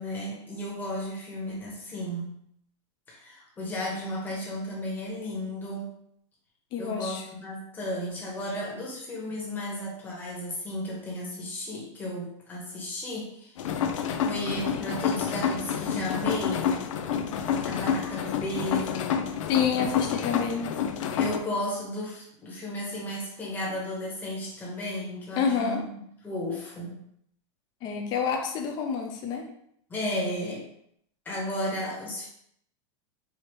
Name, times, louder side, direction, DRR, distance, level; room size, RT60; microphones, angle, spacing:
voice 1, 0.0-2.4 3.1-5.9 6.8-13.7 14.2-16.8 17.6-19.3 21.2-27.0 29.9-30.7 31.2-32.3, left 1 dB, 10° left, -4 dB, 1.1 m, -34 dB
voice 2, 6.7-7.2 19.5-20.7 25.4-25.8 27.8-29.5, left 6 dB, 25° left, 3 dB, 0.6 m, -28 dB
sound 1, 13.6-21.4, left 7 dB, 80° left, 0.5 m, -29 dB
4.9 x 2.8 x 3.0 m, 0.70 s
supercardioid pair, 165°, 16 cm